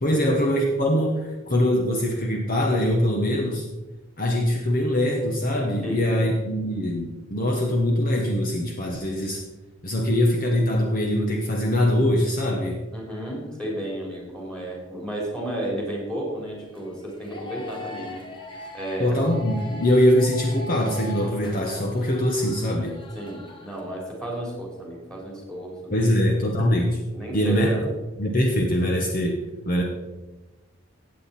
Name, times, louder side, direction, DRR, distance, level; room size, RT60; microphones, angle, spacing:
voice 1, 0.0-3.7 4.2-9.4 9.8-12.8 19.0-23.0 25.9-27.0 27.3-27.7 28.2-29.3 29.7-29.8, left 1 dB, 45° left, 1 dB, 1.2 m, -22 dB
voice 2, 5.8-6.2 12.9-18.2 18.5-19.2 23.2-25.7 26.0-26.1 27.1-27.9, right 1 dB, 5° left, -2 dB, 3.6 m, -32 dB
sound 1, 16.7-23.8, left 2 dB, 25° left, 1.3 m, -41 dB
15.5 x 8.7 x 4.3 m, 1.2 s
head